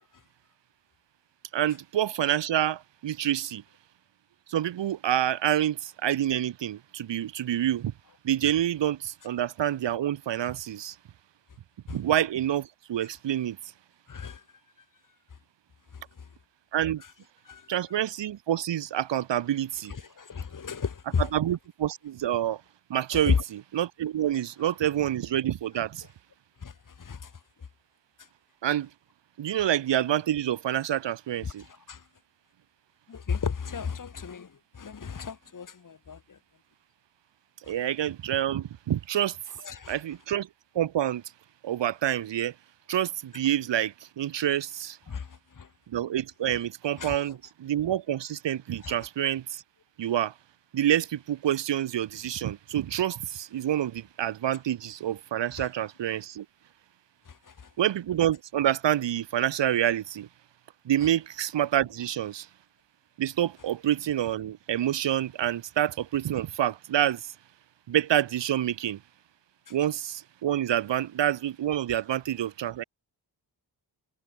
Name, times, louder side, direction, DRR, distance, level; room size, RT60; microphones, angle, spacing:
voice 1, 1.5-3.6 4.5-7.9 8.2-10.9 11.9-13.6 16.7-17.0 17.7-19.9 21.3-22.6 22.9-23.3 23.7-26.1 28.6-28.9 29.4-31.6 37.7-39.4 39.9-40.5 40.7-41.2 41.6-42.5 42.9-45.0 45.9-49.6 50.0-50.3 50.7-56.4 57.8-60.3 60.8-62.5 63.2-67.3 67.9-69.0 69.7-72.8, right 11 dB, 90° right, 0.9 m, -27 dB
voice 2, 14.1-14.4 15.9-16.3 17.0-17.1 17.5-17.7 19.9-21.3 23.1-23.4 26.6-27.3 29.5-29.6 31.4-32.0 33.1-36.4 37.6-37.7 39.6-40.0 45.1-45.7 47.0-47.2 48.8-49.0 55.6-55.7 57.3-57.7 69.7-69.8, left 6 dB, 45° left, 2.2 m, -34 dB
wide cardioid pair, 115°, 42 cm